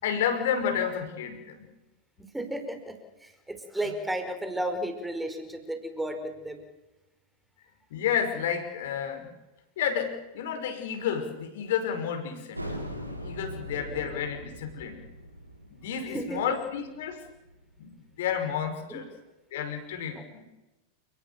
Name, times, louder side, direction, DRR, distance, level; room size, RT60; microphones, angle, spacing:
voice 1, 0.0-1.7 7.9-9.3 9.8-12.7 13.1-15.1 15.7-17.2 17.8-19.1 19.5-20.4, left 8 dB, 55° left, 6 dB, 5.5 m, -31 dB
voice 2, 2.3-6.6 13.7-14.1 16.1-16.5 18.9-19.0 20.1-20.2, right 1 dB, 5° right, 7 dB, 4.9 m, -34 dB
sound 1, 12.5-17.9, equal, 90° right, 3.8 m, -41 dB
29.5 x 18.5 x 7.1 m, 1.0 s
figure-of-eight pair, 90°, 0 cm